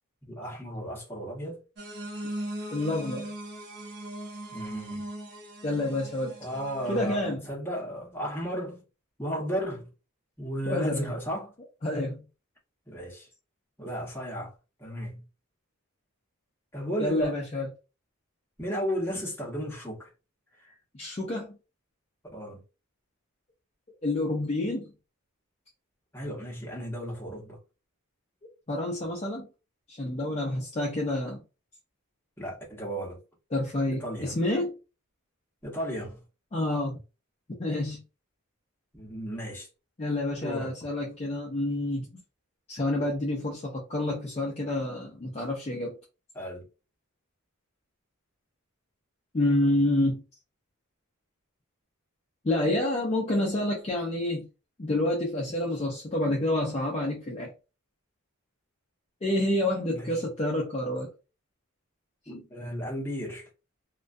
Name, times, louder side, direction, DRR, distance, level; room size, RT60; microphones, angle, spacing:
voice 1, 0.3-1.6 4.5-5.0 6.4-8.8 9.2-9.9 10.4-11.5 12.9-13.3 13.8-14.5 14.8-15.2 16.7-17.4 18.6-20.1 20.6-20.8 22.3-22.6 26.1-27.6 32.4-33.2 33.9-34.4 35.6-36.2 38.9-39.7 40.4-40.7 46.3-46.7 59.9-60.2 62.3-63.5, equal, 10° left, 0.9 m, -34 dB
sound 1, 1.8-7.1, right 1 dB, 50° right, 0.8 m, -39 dB
voice 2, 2.7-3.3 5.6-6.3 6.9-7.4 10.7-11.1 11.8-12.2 17.0-17.7 20.9-21.6 24.0-24.9 28.7-29.5 29.9-31.4 33.5-34.7 36.5-37.0 37.6-38.0 40.0-42.2 42.7-45.9 49.3-50.2 52.4-54.5 54.8-57.5 59.2-61.1, left 1 dB, 30° left, 0.5 m, -28 dB
2.2 x 2.2 x 2.5 m
head